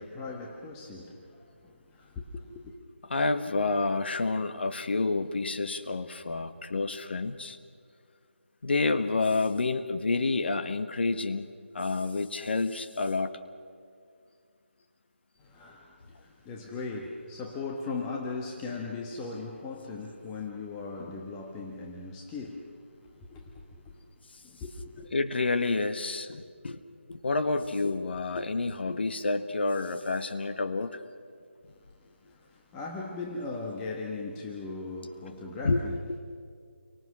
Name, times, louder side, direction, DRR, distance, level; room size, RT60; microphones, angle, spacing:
voice 1, 0.0-2.7 15.4-23.9 24.4-25.1 31.7-36.2, left 3 dB, 10° left, 1.3 m, -39 dB
voice 2, 3.1-7.6 8.6-11.5 11.7-13.3 25.1-26.8 27.1-31.0 35.6-35.8 36.1-36.2, left 3 dB, 55° left, 1.5 m, -29 dB
29.5 x 24.5 x 6.2 m
figure-of-eight pair, 165°, 7 cm